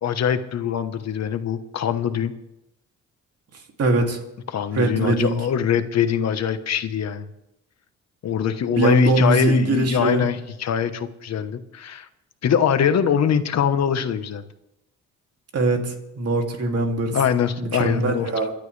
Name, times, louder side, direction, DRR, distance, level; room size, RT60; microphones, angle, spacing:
voice 1, 0.0-2.3 4.5-7.3 8.2-12.1 12.4-14.4 17.1-18.3, left 8 dB, 60° left, 9 dB, 1.3 m, -23 dB
voice 2, 3.8-4.2 4.7-5.4 8.7-10.3 15.5-17.2 17.6-18.5, right 2 dB, 55° right, 3 dB, 2.8 m, -22 dB
29.5 x 12.0 x 3.4 m, 0.87 s
cardioid pair, 90°, 30 cm